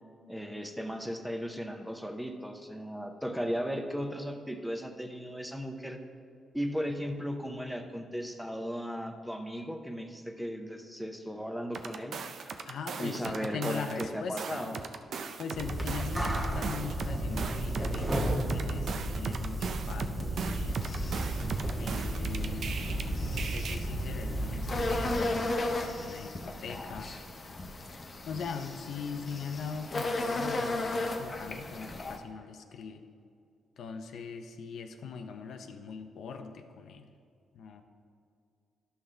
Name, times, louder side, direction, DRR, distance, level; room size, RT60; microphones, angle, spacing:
voice 1, 0.3-6.0 6.5-12.6 13.0-14.8, equal, ahead, 5 dB, 0.7 m, -36 dB
sound 1, 11.7-14.1 14.4-23.0 23.4-23.7, right 6 dB, 60° right, 0.5 m, -38 dB
voice 2, 12.6-14.8 15.4-20.9 21.8-27.1 27.7-27.8 28.2-33.0 33.8-37.1 37.5-37.8, left 5 dB, 70° left, 6 dB, 0.6 m, -41 dB
sound 2, 15.6-25.2, right 1 dB, 20° right, 1.1 m, -33 dB
sound 3, 20.7-32.2, left 2 dB, 35° left, 0.8 m, -36 dB
12.0 x 5.7 x 3.3 m, 2.4 s
cardioid pair, 105°, 0 cm